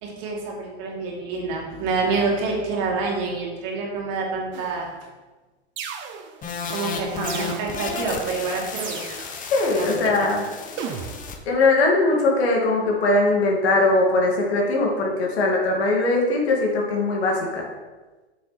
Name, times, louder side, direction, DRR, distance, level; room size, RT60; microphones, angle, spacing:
voice 1, 0.0-4.9 6.7-9.0 9.8-10.3, right 4 dB, 50° right, -1 dB, 2.5 m, -27 dB
sound 1, 4.5-5.0 5.8-6.5 7.3-8.0 8.8-9.5 10.8-11.5, right 7 dB, 35° right, 1.0 m, -35 dB
sound 2, 6.4-11.4, left 4 dB, 25° left, 1.1 m, -33 dB
voice 2, 9.5-10.4 11.5-17.7, left 2 dB, 70° left, -1 dB, 2.5 m, -20 dB
7.6 x 6.6 x 4.2 m, 1.3 s
hypercardioid pair, 110°, 34 cm